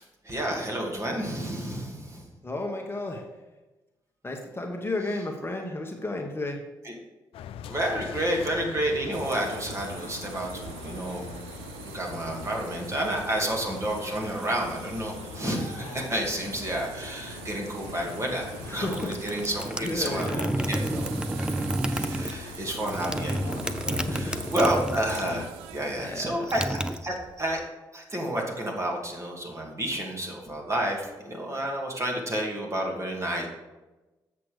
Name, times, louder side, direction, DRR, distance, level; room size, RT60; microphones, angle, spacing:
voice 1, 0.0-2.3 6.8-6.9 7.7-11.3 11.8-23.6 23.8-27.6 27.9-33.5, right 1 dB, 30° right, -1 dB, 2.4 m, -30 dB
voice 2, 2.4-3.2 4.2-6.6 18.7-19.1 19.8-20.6 23.9-24.3 25.9-26.4, left 2 dB, 25° left, 2 dB, 1.3 m, -33 dB
sound 1, 7.3-25.5, left 9 dB, 70° left, 0.4 m, -42 dB
sound 2, 9.1-26.2, right 11 dB, 85° right, 0.4 m, -44 dB
sound 3, 18.7-25.5 25.7-27.6, right 1 dB, 10° right, 0.6 m, -31 dB
7.5 x 5.9 x 5.0 m, 1.1 s
hypercardioid pair, 45°, 10 cm